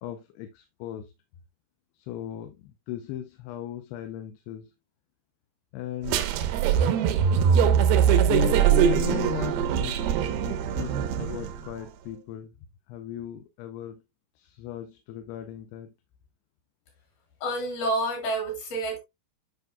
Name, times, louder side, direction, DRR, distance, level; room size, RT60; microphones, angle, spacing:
voice 1, 0.0-1.1 1.9-4.7 5.7-6.3 8.1-12.6 12.9-14.0 14.4-15.9, left 12 dB, 80° left, 2.7 m, -36 dB
sound 1, 6.1-11.6, right 8 dB, 75° right, 2.5 m, -22 dB
voice 2, 17.4-19.0, right 1 dB, 60° left, 5.4 m, -28 dB
10.5 x 5.6 x 2.3 m
omnidirectional pair, 4.9 m